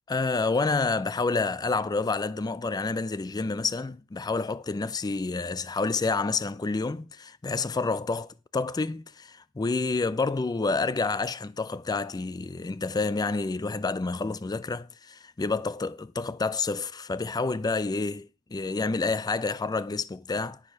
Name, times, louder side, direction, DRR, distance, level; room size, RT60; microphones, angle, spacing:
voice 1, 0.1-20.6, left 3 dB, 20° left, 0.3 m, -29 dB
12.0 x 4.9 x 5.6 m
head